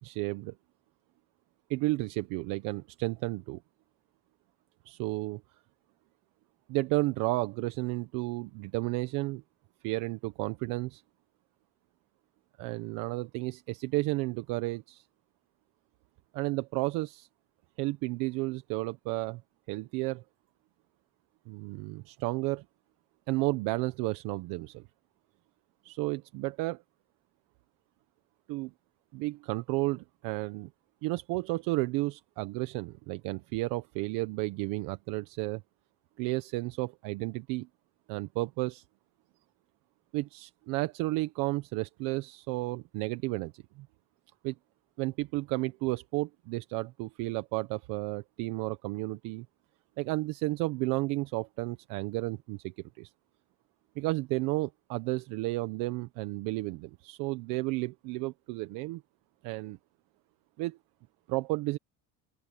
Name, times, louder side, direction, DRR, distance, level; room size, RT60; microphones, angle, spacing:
voice 1, 0.0-0.5 1.7-3.6 4.8-5.4 6.7-9.4 9.8-11.0 12.6-15.0 16.3-17.3 17.8-19.4 19.7-20.2 21.5-22.6 23.3-24.8 25.8-26.8 28.5-28.7 29.1-30.7 31.0-35.6 36.2-37.7 38.1-38.8 40.1-43.9 44.4-44.5 45.0-49.5 50.0-53.1 54.0-59.0 59.4-59.8 60.6-60.8 61.3-61.8, right 21 dB, 70° right, 1.1 m, -32 dB
open air
cardioid pair, 155°, 35 cm